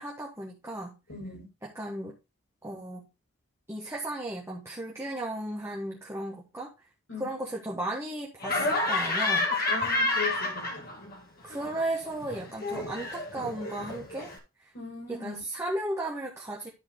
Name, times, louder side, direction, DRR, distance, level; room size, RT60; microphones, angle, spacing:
voice 1, 0.0-1.0 1.6-2.2 2.6-3.1 3.7-6.7 7.2-9.5 11.4-14.3 14.6-14.7 15.1-16.7, right 1 dB, 15° right, 1.4 m, -35 dB
voice 2, 1.1-1.5 7.1-7.3 9.7-10.9 14.7-15.4, left 4 dB, 65° left, 5.5 m, -38 dB
Laughter, 8.4-11.2 11.5-14.4, left 2 dB, 45° left, 2.0 m, -30 dB
12.0 x 4.5 x 3.7 m
head